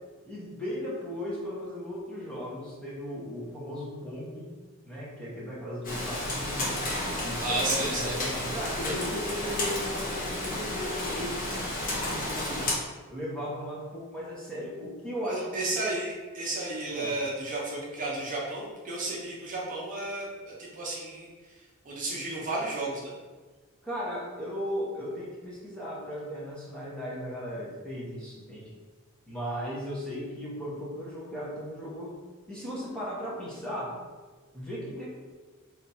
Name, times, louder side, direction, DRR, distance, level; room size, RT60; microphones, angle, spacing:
voice 1, 0.3-4.5 4.8-6.8 7.2-11.5 12.0-12.7 13.1-15.7 16.9-17.1 23.8-28.7 29.3-32.1 32.5-34.0 34.5-35.1, equal, 5° left, -7 dB, 1.0 m, -36 dB
Rain, 5.8-12.7, left 1 dB, 40° left, 0.9 m, -32 dB
voice 2, 7.4-8.2 15.2-23.1, right 2 dB, 40° right, -4 dB, 0.7 m, -33 dB
3.4 x 2.8 x 4.1 m, 1.4 s
head